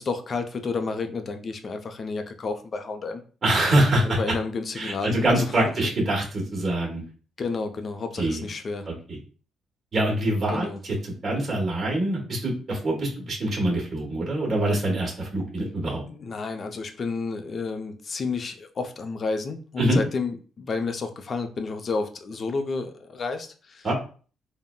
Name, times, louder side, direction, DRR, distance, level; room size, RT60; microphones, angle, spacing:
voice 1, 0.0-3.2 4.0-5.5 7.4-8.9 10.5-10.8 16.1-23.9, left 4 dB, 45° left, 7 dB, 0.4 m, -31 dB
voice 2, 3.4-4.2 4.7-7.0 8.2-8.4 8.9-9.2 9.9-16.0 19.8-20.0 23.8-23.9, right 1 dB, 40° right, -2 dB, 1.1 m, -24 dB
3.6 x 2.0 x 2.2 m, 0.39 s
cardioid pair, 90°, 0 cm